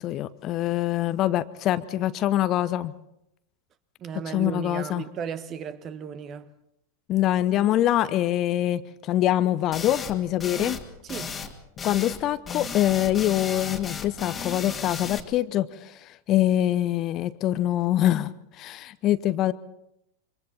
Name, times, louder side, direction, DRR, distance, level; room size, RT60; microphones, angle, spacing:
voice 1, 0.0-2.9 4.3-5.1 7.1-10.8 11.8-19.5, left 13 dB, 35° left, 0.8 m, -24 dB
voice 2, 4.0-6.4 10.4-10.8 11.1-11.3, right 7 dB, 30° right, 1.4 m, -35 dB
sound 1, 9.7-10.1 10.4-10.8 11.1-11.5 11.8-12.2 12.5-15.2, left 6 dB, 15° left, 2.1 m, -34 dB
28.0 x 25.0 x 4.3 m
figure-of-eight pair, 90°, 0 cm